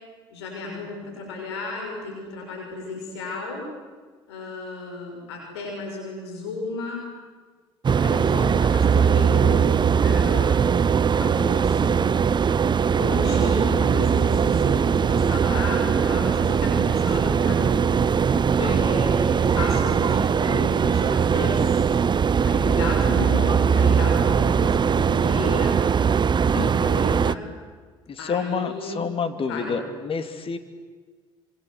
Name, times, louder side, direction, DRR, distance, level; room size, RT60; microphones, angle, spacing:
voice 1, 0.3-3.7 4.3-7.0 8.0-9.7 10.0-10.7 11.2-12.0 12.8-18.1 18.7-21.8 22.4-25.8 26.5-27.4 28.2-29.0 29.5-29.8, left 3 dB, 85° left, 1 dB, 6.3 m, -33 dB
sound 1, 7.8-27.3, right 7 dB, 35° right, 0.8 m, -20 dB
voice 2, 18.3-18.8 26.5-26.7 28.1-30.6, left 5 dB, 45° left, 9 dB, 2.8 m, -29 dB
27.5 x 26.0 x 8.1 m, 1.4 s
hypercardioid pair, 60°, 13 cm